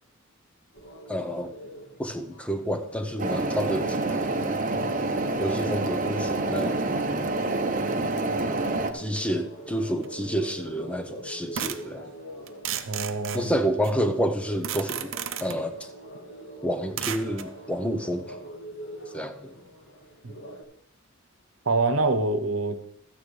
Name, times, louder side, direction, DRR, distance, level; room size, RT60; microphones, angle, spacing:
sound 1, 0.7-20.6, right 1 dB, 60° left, 2.0 m, -44 dB
voice 1, 1.1-1.5 2.0-4.4 5.4-6.9 8.9-12.1 13.3-15.1 15.4-15.9 16.6-18.5 19.1-19.6, equal, 5° left, 6 dB, 0.7 m, -29 dB
sound 2, 3.2-8.9, right 2 dB, 40° right, 0.9 m, -27 dB
sound 3, 10.0-10.1 11.5-11.9 12.5-14.0 14.6-15.6 17.0-17.5, right 9 dB, 65° right, 0.7 m, -33 dB
voice 2, 12.9-13.5 21.7-22.8, right 3 dB, 90° right, 9 dB, 1.0 m, -25 dB
13.0 x 9.2 x 3.3 m, 0.68 s
head